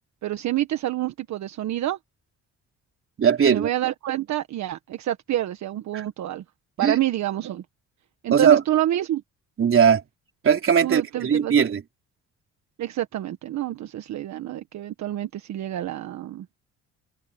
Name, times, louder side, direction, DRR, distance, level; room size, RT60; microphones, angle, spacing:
voice 1, 0.2-2.0 3.5-6.4 6.8-7.6 8.2-9.2 10.8-11.5 12.8-16.4, right 13 dB, 70° right, 1.4 m, -27 dB
voice 2, 3.2-3.7 5.9-6.0 6.8-7.0 8.3-8.6 9.6-10.0 10.4-11.8, right 7 dB, 45° right, 3.9 m, -19 dB
cardioid pair, 95°, 29 cm